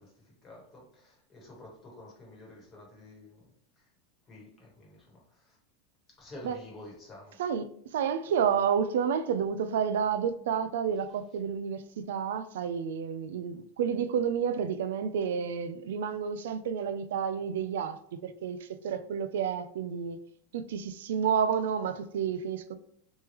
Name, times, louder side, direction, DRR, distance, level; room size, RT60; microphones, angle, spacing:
voice 1, 0.0-3.5 3.8-3.9 4.3-5.6 6.2-7.4, left 1 dB, 20° left, 1.2 m, -50 dB
voice 2, 7.9-20.2 20.5-22.7, right 7 dB, 85° right, 0.3 m, -30 dB
3.4 x 3.1 x 3.0 m
supercardioid pair, 170°, 0 cm